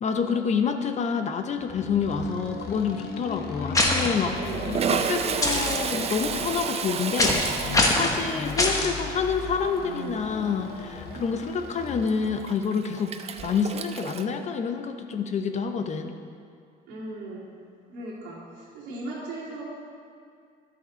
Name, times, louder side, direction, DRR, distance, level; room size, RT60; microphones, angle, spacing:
voice 1, 0.0-4.4 4.9-7.4 7.9-13.1 13.4-16.1, left 6 dB, 45° left, 7 dB, 0.7 m, -28 dB
sound 1, 1.6-12.4, left 5 dB, 70° left, 1.0 m, -37 dB
Toilet flush, 2.0-2.4 2.7-2.8 3.8-14.3, right 6 dB, 35° right, 0.5 m, -32 dB
sound 2, 3.7-4.1 5.4-5.7 7.2-7.5 7.7-8.1 8.6-8.9, left 2 dB, 20° left, 1.1 m, -22 dB
voice 2, 4.3-4.9 16.9-17.4 17.9-19.6, right 2 dB, 85° right, -6 dB, 2.5 m, -38 dB
11.0 x 6.5 x 4.3 m, 2.3 s
cardioid pair, 110°, 17 cm